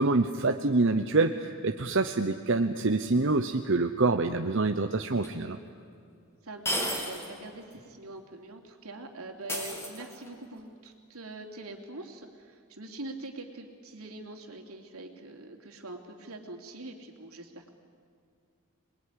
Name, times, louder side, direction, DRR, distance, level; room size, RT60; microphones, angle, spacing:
voice 1, 0.0-5.6, right 3 dB, 55° right, 6 dB, 0.9 m, -26 dB
sound 1, 5.2-5.3 6.6-7.4 7.7-7.8 9.5-10.4, equal, 10° left, 3.5 m, -33 dB
voice 2, 6.4-17.7, right 2 dB, 80° right, 3 dB, 3.2 m, -43 dB
27.0 x 21.0 x 10.0 m, 2.4 s
head